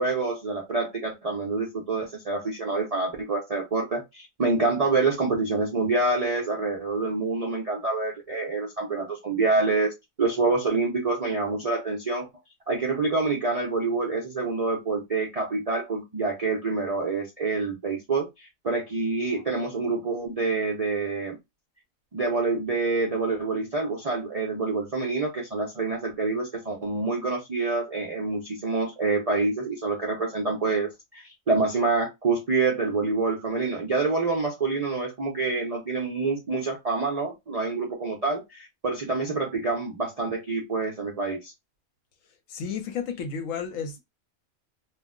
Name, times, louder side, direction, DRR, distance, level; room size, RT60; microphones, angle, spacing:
voice 1, 0.0-9.9 10.2-12.3 12.7-21.4 22.1-41.5, right 3 dB, 50° right, 0.4 m, -27 dB
voice 2, 42.5-44.0, left 6 dB, 75° left, 1.1 m, -32 dB
2.4 x 2.1 x 3.6 m
omnidirectional pair, 1.4 m